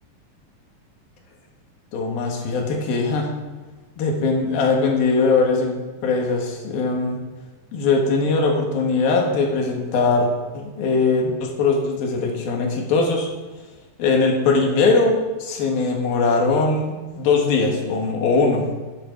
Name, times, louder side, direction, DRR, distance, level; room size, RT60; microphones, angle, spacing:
voice 1, 1.9-3.3 4.0-5.7 6.0-7.2 7.7-13.3 14.0-18.7, left 3 dB, 90° left, 2 dB, 3.6 m, -20 dB
12.0 x 10.5 x 5.3 m, 1.2 s
omnidirectional pair, 4.1 m